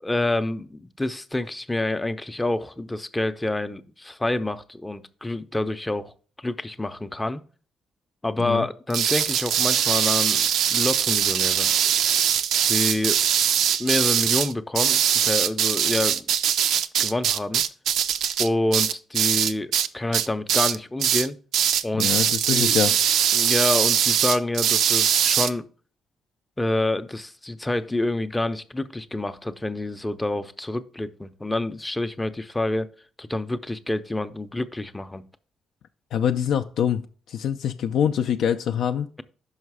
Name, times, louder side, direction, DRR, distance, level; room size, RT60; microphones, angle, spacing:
voice 1, 0.0-7.4 8.2-11.7 12.7-13.2 13.8-16.2 17.0-17.6 18.4-21.4 21.8-22.8 23.3-25.7 26.6-32.9 33.2-35.2, left 2 dB, 15° left, 0.5 m, -27 dB
sound 1, 8.9-19.9 20.1-20.7 21.0-21.3 21.5-25.5, right 9 dB, 75° right, 0.4 m, -22 dB
voice 2, 22.0-23.0 36.1-37.0 37.3-39.1, left 8 dB, 75° left, 0.3 m, -24 dB
5.6 x 5.3 x 4.7 m
cardioid pair, 90°, 0 cm